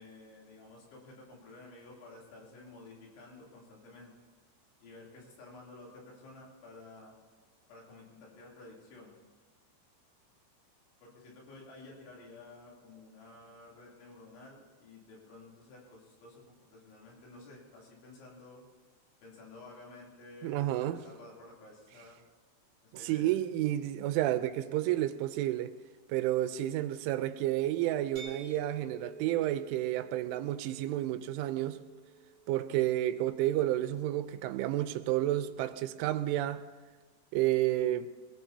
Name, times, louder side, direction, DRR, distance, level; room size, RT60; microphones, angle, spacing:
voice 1, 0.0-4.3 4.8-7.1 7.7-9.2 11.0-18.7 19.2-22.2 22.8-23.4, left 2 dB, 70° left, 5.6 m, -52 dB
voice 2, 20.4-21.0 22.9-25.7 26.1-31.8 32.5-36.6 37.3-38.1, right 14 dB, 85° right, 3.1 m, -30 dB
sound 1, 28.2-33.9, right 3 dB, 45° right, 2.5 m, -50 dB
23.0 x 20.0 x 2.8 m
omnidirectional pair, 5.6 m